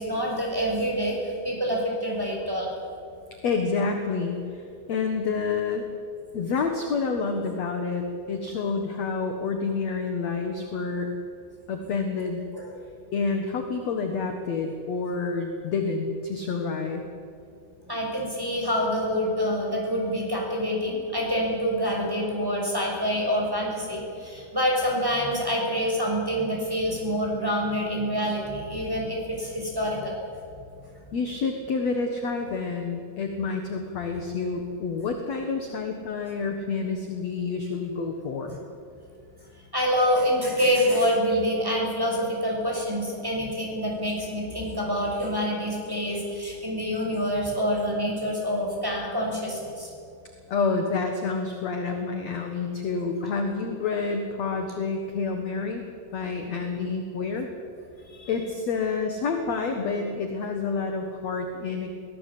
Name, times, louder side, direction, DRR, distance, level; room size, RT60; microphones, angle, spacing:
voice 1, 0.0-2.7 12.5-12.7 17.9-30.1 39.7-49.9 58.1-58.3, equal, 5° right, -2 dB, 5.9 m, -26 dB
voice 2, 3.4-5.9 6.3-11.1 11.7-12.4 13.1-17.1 31.1-38.6 50.5-55.9 56.1-57.5 58.3-61.9, left 4 dB, 55° left, 4 dB, 2.4 m, -28 dB
23.5 x 17.5 x 8.7 m, 2.5 s
omnidirectional pair, 4.4 m